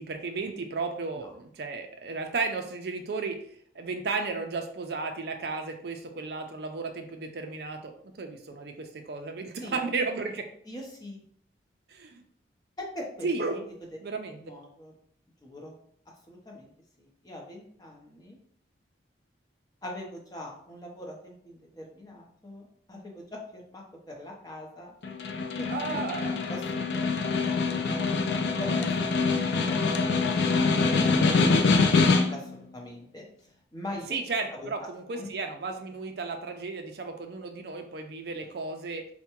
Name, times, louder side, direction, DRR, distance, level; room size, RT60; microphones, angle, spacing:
voice 1, 0.0-3.4 3.8-7.9 8.2-10.5 11.9-12.1 13.2-13.7 14.0-14.4 25.6-26.4 34.1-39.0, right 4 dB, 55° right, 5 dB, 0.4 m, -34 dB
voice 2, 10.7-11.2 12.8-13.3 14.4-14.9 15.4-15.8 16.3-16.7 17.0-18.4 19.8-24.9 25.6-26.0 26.3-28.9 29.7-30.1 31.1-33.2 33.7-34.1 34.5-34.7 35.1-35.3, left 1 dB, 20° left, -1 dB, 0.7 m, -42 dB
Snare drum, 25.0-32.5, left 4 dB, 70° left, 0.4 m, -25 dB
4.6 x 2.1 x 2.9 m, 0.62 s
head